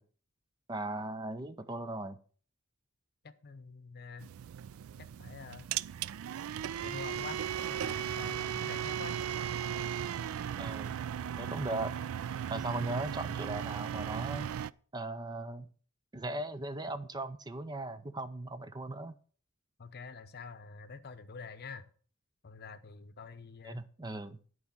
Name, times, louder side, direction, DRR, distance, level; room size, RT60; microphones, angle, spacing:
voice 1, 0.7-2.2 10.6-11.0 11.4-11.9 12.5-14.5 14.9-15.7 16.1-19.2 23.6-24.4, right 2 dB, 20° right, 11 dB, 0.6 m, -38 dB
voice 2, 3.2-4.3 5.0-5.7 6.8-9.2 19.8-21.9 22.4-23.8, left 4 dB, 50° left, 12 dB, 0.8 m, -47 dB
sound 1, 4.2-14.7, right 9 dB, 80° right, 0.3 m, -37 dB
10.5 x 4.8 x 7.1 m, 0.43 s
head